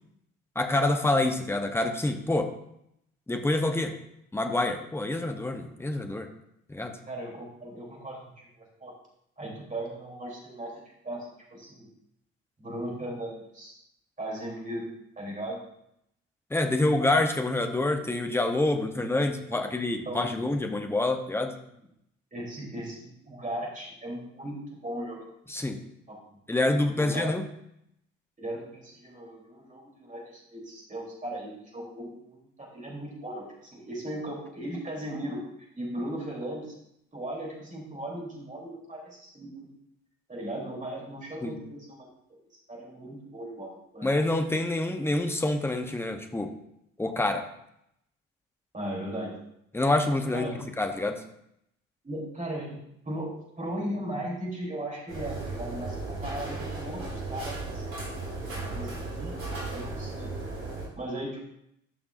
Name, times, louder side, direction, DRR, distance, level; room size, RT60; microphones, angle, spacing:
voice 1, 0.5-2.5 3.3-4.0 4.3-6.3 6.7-7.0 16.5-21.5 25.5-25.8 26.5-27.4 41.4-41.6 44.0-46.5 47.0-47.4 49.7-51.2, left 2 dB, 5° left, 5 dB, 0.9 m, -27 dB
voice 2, 7.1-8.3 8.6-8.9 9.4-11.9 12.6-13.8 14.2-14.9 15.2-15.6 19.6-19.7 20.1-20.4 22.3-25.3 26.1-26.2 26.9-27.3 28.4-35.4 35.8-36.8 37.1-39.7 40.3-42.4 42.7-44.1 48.7-49.3 50.3-50.7 52.0-52.8 53.1-57.8 58.7-60.3 60.9-61.4, right 1 dB, 20° right, -4 dB, 3.5 m, -37 dB
sound 1, 55.1-60.9, right 3 dB, 75° right, 2.0 m, -35 dB
13.0 x 5.9 x 2.6 m, 0.77 s
figure-of-eight pair, 50°, 40 cm